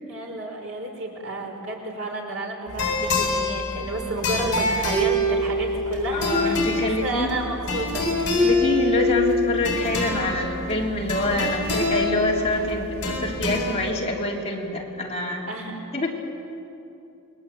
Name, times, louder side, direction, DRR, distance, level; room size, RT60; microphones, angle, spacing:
voice 1, 0.1-8.1 15.5-15.7, right 2 dB, 60° right, 1 dB, 4.9 m, -31 dB
sound 1, 2.7-13.8, left 1 dB, 55° left, 7.6 m, -25 dB
voice 2, 6.1-7.3 8.4-15.5 15.9-16.1, left 2 dB, 30° left, -2 dB, 3.4 m, -26 dB
29.0 x 21.5 x 8.9 m, 2.8 s
head